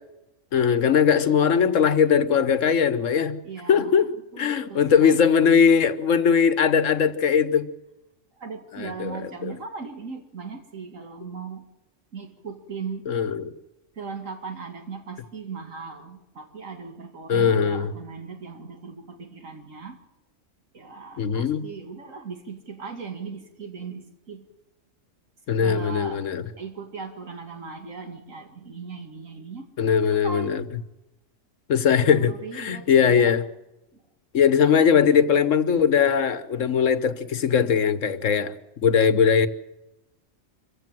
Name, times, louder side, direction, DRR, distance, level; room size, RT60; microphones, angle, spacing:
voice 1, 0.5-3.4 3.7-4.1 4.4-7.7 8.7-9.5 13.1-13.4 17.3-17.9 21.2-21.7 25.5-26.4 29.8-30.6 31.7-33.4 34.3-39.5, left 7 dB, 75° left, 1.4 m, -20 dB
voice 2, 3.4-5.4 6.6-6.8 8.4-11.6 12.1-13.1 14.0-20.0 20.7-24.5 25.6-26.3 26.6-29.7 30.1-30.6 32.1-33.4 33.9-34.0 34.7-35.0, right 5 dB, 85° right, 2.5 m, -38 dB
26.0 x 15.5 x 7.4 m
omnidirectional pair, 1.3 m